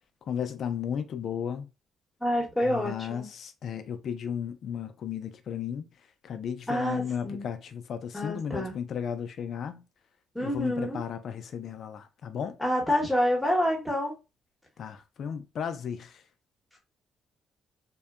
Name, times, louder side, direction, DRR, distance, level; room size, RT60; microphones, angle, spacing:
voice 1, 0.3-1.7 2.6-5.9 6.2-9.8 10.4-12.6 14.8-16.2, left 8 dB, 60° left, 0.4 m, -34 dB
voice 2, 2.2-3.3 6.7-7.4 8.1-8.7 10.3-11.0 12.6-14.1, equal, 5° left, 1.0 m, -27 dB
2.6 x 2.2 x 2.3 m
cardioid pair, 90°, 0 cm